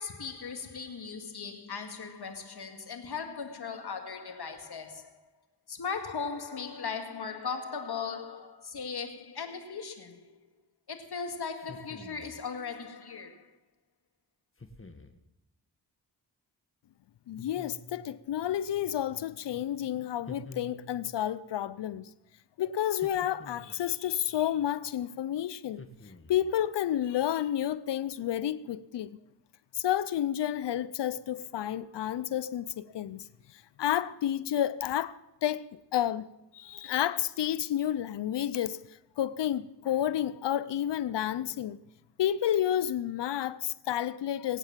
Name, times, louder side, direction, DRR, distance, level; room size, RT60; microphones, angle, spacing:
voice 1, 0.0-5.2 5.7-10.4 10.9-13.6, left 5 dB, 65° left, 2.3 m, -38 dB
sound 1, 11.6-12.4 14.6-15.2 17.4-18.1 20.3-21.1 22.9-23.9 25.7-26.5, left 2 dB, 30° left, 1.9 m, -48 dB
voice 2, 17.3-22.1 22.6-25.8 26.3-29.1 29.7-33.3 33.5-35.7 35.9-36.3 36.5-38.8 39.2-41.8 42.2-44.6, left 11 dB, 85° left, 0.6 m, -30 dB
20.0 x 9.0 x 7.4 m
cardioid pair, 50°, 41 cm